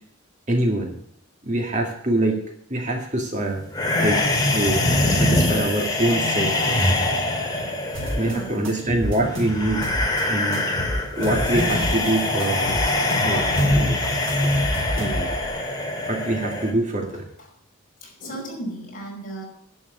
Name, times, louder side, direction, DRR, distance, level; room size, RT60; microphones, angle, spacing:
voice 1, 0.5-0.9 1.4-2.4 2.7-3.6 4.0-4.2 4.5-6.9 8.2-9.9 10.3-10.7 11.1-12.8 13.2-14.0 14.4-14.5 15.0-15.4 16.1-17.3, right 1 dB, 35° right, 2 dB, 1.8 m, -25 dB
sound 1, 3.7-16.7, left 1 dB, 20° left, 2.1 m, -23 dB
voice 2, 7.9-8.7 15.6-15.8 17.1-17.5 18.0-19.4, right 1 dB, 40° left, -2 dB, 5.4 m, -36 dB
sound 2, 7.9-8.3 8.6-10.2 10.5-12.1 12.4-15.5, equal, 60° right, 4.8 m, -29 dB
11.0 x 7.7 x 7.9 m, 0.68 s
head